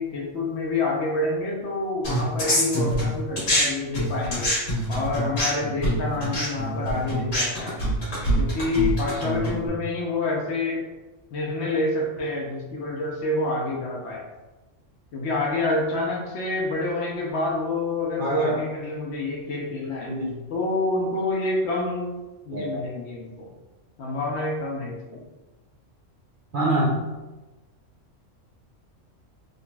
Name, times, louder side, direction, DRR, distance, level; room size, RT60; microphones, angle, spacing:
voice 1, 0.0-4.5 4.9-7.8 8.4-10.8 11.3-14.3 15.1-20.1 20.5-22.2 22.4-23.5 24.0-25.2, left 2 dB, 65° left, -1 dB, 0.9 m, -27 dB
sound 1, 2.0-3.7 3.9-9.7, equal, 80° left, 1.7 m, -25 dB
voice 2, 18.2-18.6 20.1-20.3 22.5-22.8 26.5-27.1, right 1 dB, 60° right, -4 dB, 0.6 m, -25 dB
3.8 x 3.0 x 2.3 m, 1.1 s
omnidirectional pair, 1.3 m